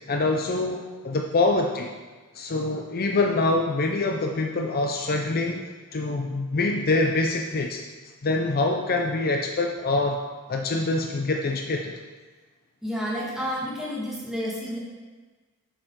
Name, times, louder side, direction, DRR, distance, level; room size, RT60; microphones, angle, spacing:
voice 1, 0.1-1.9 2.3-7.8 8.2-10.2 10.5-11.9, left 2 dB, 45° left, 2 dB, 0.6 m, -25 dB
voice 2, 12.8-14.8, equal, ahead, -6 dB, 2.1 m, -30 dB
7.8 x 6.6 x 4.6 m, 1.4 s
head